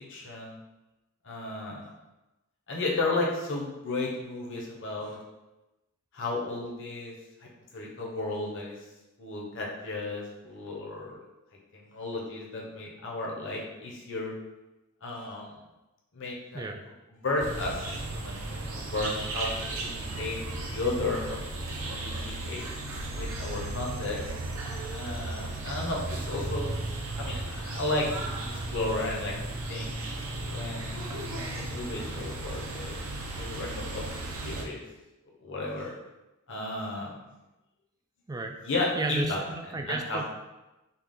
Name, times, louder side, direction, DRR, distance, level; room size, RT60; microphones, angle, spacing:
voice 1, 0.1-0.6 1.2-1.9 2.7-5.2 6.1-7.1 7.7-8.8 9.2-11.1 11.7-14.3 15.0-15.6 16.1-16.6 17.2-21.4 21.8-22.6 23.2-24.2 24.9-26.7 27.2-28.1 28.5-29.3 29.7-29.9 30.5-31.1 31.6-33.0 33.3-34.1 34.4-34.8 35.4-35.9 36.5-37.1 38.6-39.4 39.9-40.2, left 2 dB, 60° left, -2 dB, 1.0 m, -33 dB
sound 1, 17.4-34.6, right 2 dB, 60° right, 0.7 m, -35 dB
voice 2, 39.0-40.3, right 2 dB, 15° right, 4 dB, 0.3 m, -33 dB
5.6 x 2.4 x 3.7 m, 1.0 s
head